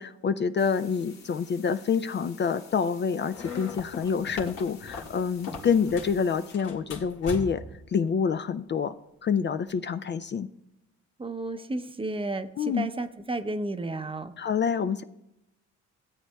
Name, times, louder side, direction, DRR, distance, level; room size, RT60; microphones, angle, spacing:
voice 1, 0.0-7.6 7.9-8.9 9.2-10.5 12.6-12.9 14.4-15.0, left 6 dB, 40° left, 10 dB, 0.4 m, -27 dB
sound 1, 0.6-6.5, left 6 dB, 60° left, 1.8 m, -53 dB
sound 2, 3.3-6.2 6.5-7.8, left 4 dB, 90° left, 1.9 m, -39 dB
voice 2, 11.2-14.3, right 2 dB, 20° right, 9 dB, 0.7 m, -32 dB
16.5 x 8.6 x 2.3 m, 0.87 s
cardioid pair, 90°, 30 cm